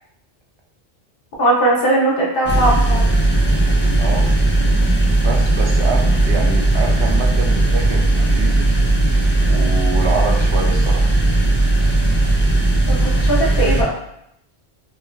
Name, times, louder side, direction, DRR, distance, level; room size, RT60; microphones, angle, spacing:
voice 1, 1.4-3.1 12.9-13.9, right 1 dB, 65° left, -4 dB, 1.0 m, -18 dB
sound 1, 2.4-13.8, right 2 dB, 15° left, 0.4 m, -16 dB
voice 2, 3.4-4.3 5.2-8.7 9.5-11.1, right 4 dB, 85° right, 1 dB, 0.9 m, -27 dB
4.3 x 2.5 x 2.2 m, 0.78 s
omnidirectional pair, 1.1 m